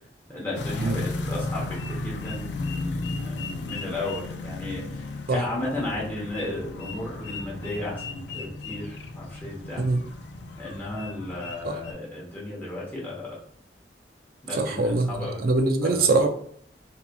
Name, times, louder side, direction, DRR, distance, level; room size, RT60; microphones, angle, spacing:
voice 1, 0.3-9.8 10.6-13.4 14.4-15.4 15.8-16.1, left 2 dB, 10° left, 0.9 m, -34 dB
sound 1, 0.5-11.9, left 2 dB, 70° left, 0.4 m, -35 dB
voice 2, 14.6-15.1 15.4-16.3, right 3 dB, 55° right, 0.5 m, -22 dB
3.9 x 2.8 x 2.3 m
head